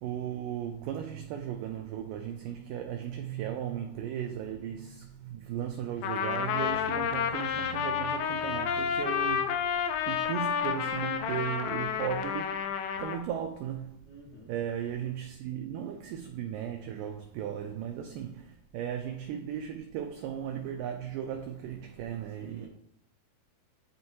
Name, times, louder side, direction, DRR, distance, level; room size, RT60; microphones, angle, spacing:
voice 1, 0.0-12.7 13.0-14.0 14.5-22.7, right 9 dB, 85° right, 1.9 m, -36 dB
Trumpet, 6.0-13.2, left 8 dB, 85° left, 1.9 m, -30 dB
voice 2, 14.0-14.5 22.4-22.7, left 1 dB, 55° left, 2.6 m, -50 dB
10.5 x 4.5 x 2.8 m
omnidirectional pair, 4.5 m